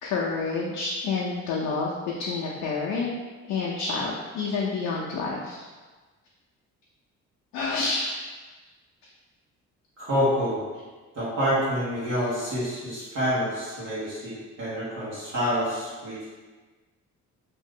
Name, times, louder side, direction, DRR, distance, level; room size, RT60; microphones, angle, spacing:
voice 1, 0.0-3.1 3.5-5.7 7.5-8.2, left 4 dB, 85° left, -4 dB, 0.6 m, -28 dB
voice 2, 10.0-10.6 11.1-16.3, equal, 55° right, -10 dB, 1.3 m, -27 dB
2.8 x 2.5 x 3.6 m, 1.3 s
cardioid pair, 90°, 30 cm